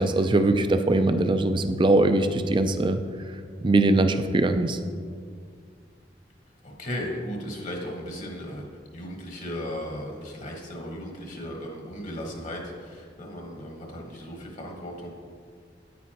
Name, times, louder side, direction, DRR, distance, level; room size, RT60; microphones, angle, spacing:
voice 1, 0.0-3.0 3.6-4.8, right 2 dB, 30° right, 9 dB, 0.4 m, -21 dB
voice 2, 6.6-15.1, equal, 45° left, 0 dB, 1.2 m, -36 dB
9.4 x 9.2 x 2.9 m, 2.1 s
head